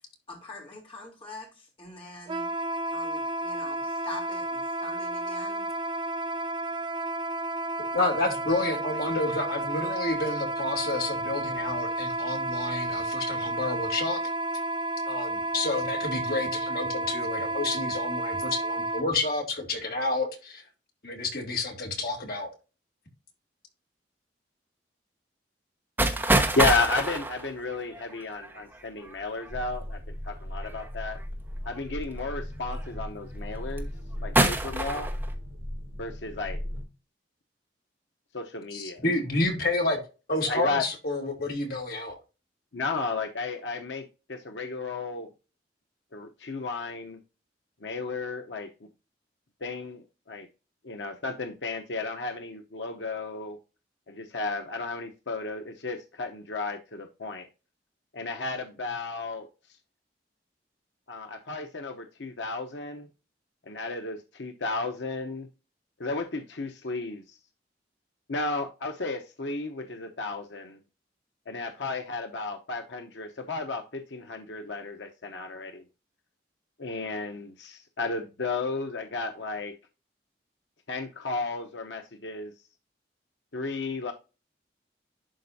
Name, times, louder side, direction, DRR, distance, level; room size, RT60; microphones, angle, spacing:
voice 1, 0.3-1.5 1.8-2.5 2.9-5.6, left 2 dB, 30° left, 3.3 m, -44 dB
Wind instrument woodwind instrument, 2.3-19.1, right 2 dB, 25° right, 0.4 m, -31 dB
voice 2, 7.9-14.2 15.1-20.6 21.0-22.5 38.7-40.0 40.3-42.1, left 2 dB, 55° left, 2.5 m, -29 dB
sound 1, 26.0-29.5 30.6-31.1 31.9-32.0 32.6-33.0 33.5-34.0 34.4-35.3, right 2 dB, 10° right, 1.2 m, -26 dB
voice 3, 26.5-31.2 31.6-33.9 34.2-35.1 36.0-36.6 38.3-39.0 40.5-40.8 42.7-45.3 46.1-47.2 47.8-48.7 49.6-50.5 50.8-53.6 54.1-57.5 58.1-59.5 61.1-63.1 63.7-65.5 66.0-67.4 68.3-70.8 71.5-75.8 76.8-79.7 80.9-82.5 83.5-84.1, left 3 dB, 90° left, 0.9 m, -33 dB
sound 2, 29.5-36.8, equal, 65° right, 3.5 m, -37 dB
11.5 x 4.3 x 2.7 m
head